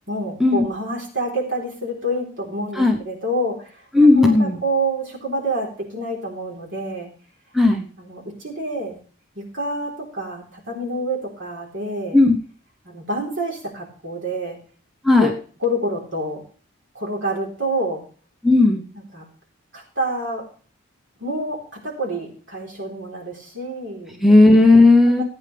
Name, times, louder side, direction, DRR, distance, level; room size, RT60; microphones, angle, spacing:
voice 1, 0.1-3.9 4.2-7.1 8.0-9.0 9.4-12.2 12.8-14.6 15.2-15.3 15.6-16.4 16.9-18.0 18.9-19.3 19.7-20.5 21.2-24.2 25.1-25.2, right 1 dB, 65° right, -1 dB, 3.9 m, -27 dB
voice 2, 3.9-4.6 7.5-7.9 12.1-12.4 15.0-15.3 18.4-18.8 24.2-25.2, left 2 dB, ahead, 2 dB, 0.9 m, -13 dB
15.0 x 8.9 x 3.4 m, 0.41 s
head